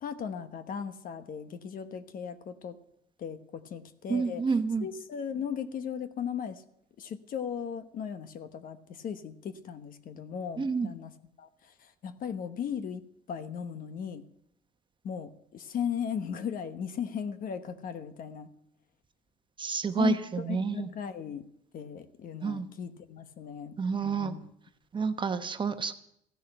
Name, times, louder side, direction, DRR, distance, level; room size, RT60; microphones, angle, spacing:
voice 1, 0.0-2.7 3.2-6.6 7.0-14.2 15.0-18.5 20.0-21.5 21.7-24.5, left 8 dB, 55° left, 11 dB, 1.1 m, -37 dB
voice 2, 4.1-4.9 10.6-10.9 19.6-20.9 22.4-22.7 23.8-24.3 24.9-25.9, right 5 dB, 30° right, 9 dB, 1.0 m, -29 dB
15.0 x 6.5 x 10.0 m, 0.74 s
cardioid pair, 110°, 17 cm